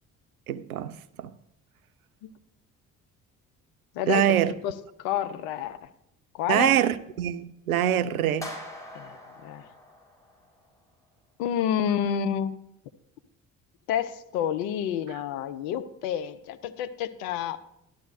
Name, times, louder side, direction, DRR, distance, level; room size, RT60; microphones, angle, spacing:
voice 1, 0.5-1.3 4.1-4.5 6.5-8.5, right 11 dB, 80° right, 0.5 m, -24 dB
voice 2, 3.9-5.8 6.3-6.7 8.9-9.2 9.4-9.7 11.4-12.6 13.9-17.6, left 9 dB, 60° left, 0.7 m, -29 dB
sound 1, 8.4-10.6, left 1 dB, 5° left, 4.3 m, -42 dB
12.5 x 12.0 x 2.6 m
figure-of-eight pair, 50°, 42 cm